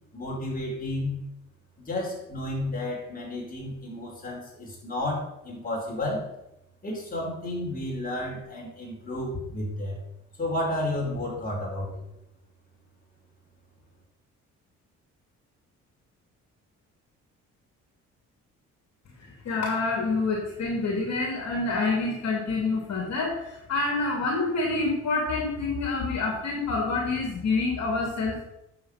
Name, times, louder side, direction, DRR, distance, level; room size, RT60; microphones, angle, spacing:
voice 1, 0.1-1.3 1.8-6.3 6.8-10.0 10.4-12.0, left 1 dB, 30° left, -2 dB, 4.7 m, -32 dB
voice 2, 19.2-28.4, left 3 dB, 60° left, 1 dB, 2.4 m, -27 dB
9.5 x 7.0 x 5.6 m, 0.87 s
cardioid pair, 90°, 30 cm